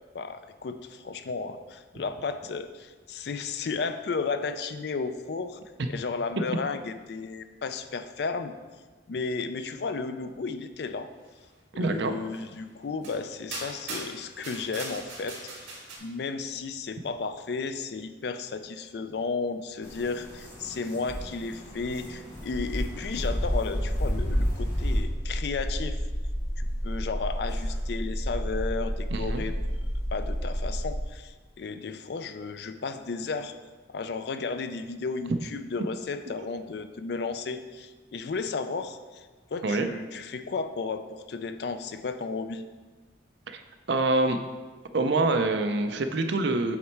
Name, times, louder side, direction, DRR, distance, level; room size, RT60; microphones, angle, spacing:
voice 1, 0.1-5.6 5.9-8.5 9.1-11.1 11.7-15.7 16.0-26.0 26.6-29.6 30.1-33.6 33.9-42.6, left 4 dB, 60° left, 10 dB, 0.4 m, -33 dB
voice 2, 11.8-12.1 29.1-29.4 39.6-39.9 43.5-43.6 43.9-44.4 44.9-46.8, right 2 dB, 70° right, 7 dB, 0.5 m, -25 dB
sound 1, 12.3-12.4 13.0-13.2 13.5-16.0, right 3 dB, 85° right, 2.0 m, -39 dB
sound 2, 19.8-25.0, equal, 20° left, 1.4 m, -30 dB
sound 3, 24.7-31.0, equal, ahead, 1.7 m, -31 dB
7.3 x 4.3 x 4.5 m, 1.3 s
head